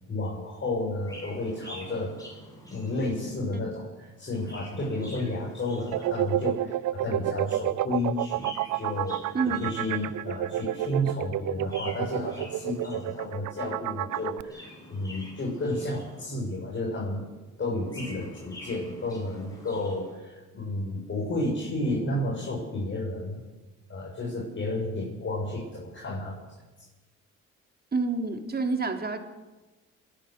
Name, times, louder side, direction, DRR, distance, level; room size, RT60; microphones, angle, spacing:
voice 1, 0.1-2.2 2.7-9.3 9.6-17.2 17.6-23.4 23.9-26.5, left 1 dB, 40° left, -5 dB, 7.5 m, -32 dB
Chirp tweet, 1.0-3.5 4.2-6.6 8.1-10.3 11.6-13.5 14.3-16.6 17.6-20.2, left 1 dB, 10° left, 7.4 m, -47 dB
sound 1, 5.9-14.4, right 14 dB, 75° right, 0.7 m, -29 dB
voice 2, 9.3-9.6 27.9-29.2, right 4 dB, 30° right, 5 dB, 3.3 m, -28 dB
27.5 x 11.0 x 10.0 m, 1.2 s
cardioid pair, 90°, 30 cm